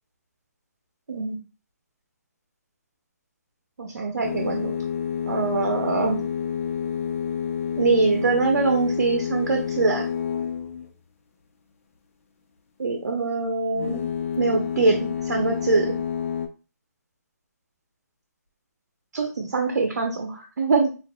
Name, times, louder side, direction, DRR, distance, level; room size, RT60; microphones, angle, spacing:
voice 1, 3.8-4.7 5.3-6.2 7.8-10.1 12.8-14.0 14.4-15.9 19.1-20.9, right 4 dB, 85° right, 2 dB, 0.8 m, -23 dB
sound 1, 4.2-11.0 13.7-16.5, left 7 dB, 50° left, 0.8 m, -29 dB
5.5 x 2.5 x 2.2 m, 0.34 s
hypercardioid pair, 155°, 9 cm